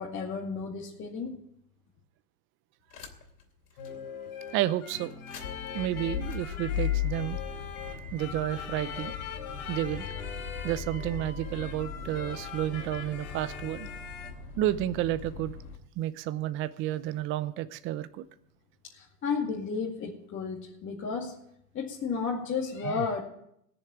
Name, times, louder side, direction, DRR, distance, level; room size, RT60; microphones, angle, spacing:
voice 1, 0.0-1.4 18.9-21.3 21.7-23.2, left 5 dB, 25° left, -3 dB, 2.3 m, -33 dB
sound 1, 2.9-3.4 3.8-3.9 5.1-15.8, left 8 dB, 80° left, 3.0 m, -38 dB
sound 2, 3.8-14.3, left 7 dB, 65° left, 3.4 m, -41 dB
voice 2, 4.5-5.1 5.7-7.4 8.1-9.2 9.7-10.1 10.6-13.9 14.6-15.6 16.0-18.2 22.8-23.0, right 13 dB, 25° right, 13 dB, 0.7 m, -31 dB
17.0 x 7.1 x 8.8 m, 0.75 s
hypercardioid pair, 120°, 46 cm